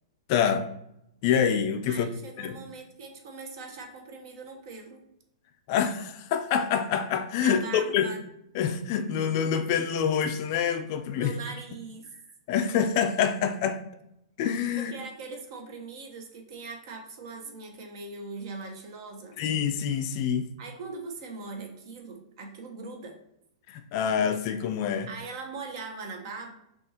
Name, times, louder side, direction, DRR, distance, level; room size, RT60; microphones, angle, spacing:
voice 1, 0.3-0.7 1.2-2.1 2.4-2.6 5.7-8.1 8.5-11.3 12.5-13.8 14.4-14.9 19.4-20.5 23.7-25.1, left 8 dB, 40° left, 0.4 m, -26 dB
voice 2, 1.9-5.0 7.4-8.2 11.1-12.1 14.7-19.4 20.6-23.2 25.1-26.5, right 4 dB, 50° right, 0.9 m, -41 dB
6.0 x 2.4 x 2.8 m
hypercardioid pair, 155°, 3 cm